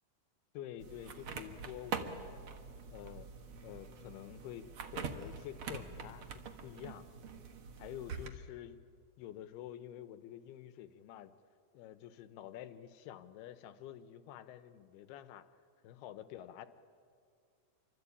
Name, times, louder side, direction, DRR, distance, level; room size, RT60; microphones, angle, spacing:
voice 1, 0.5-2.4 2.9-3.3 3.6-4.7 4.9-7.1 7.8-8.8 9.2-11.4 11.7-15.5 15.8-16.7, left 11 dB, 80° left, 11 dB, 2.9 m, -48 dB
sound 1, 0.8-8.3, right 5 dB, 70° right, 1.3 m, -44 dB
28.0 x 24.5 x 8.5 m, 2.3 s
omnidirectional pair, 4.6 m